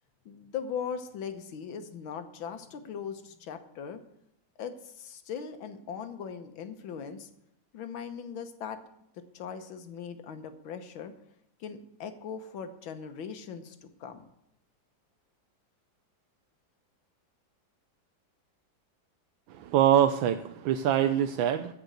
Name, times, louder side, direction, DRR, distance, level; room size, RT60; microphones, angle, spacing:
voice 1, 0.3-4.0 4.6-7.3 7.7-8.8 9.3-11.1 11.6-13.8 14.0-14.3, left 7 dB, 85° left, 8 dB, 1.9 m, -39 dB
voice 2, 19.6-21.7, right 10 dB, 90° right, 8 dB, 1.4 m, -24 dB
14.5 x 5.3 x 7.9 m, 0.80 s
omnidirectional pair, 2.1 m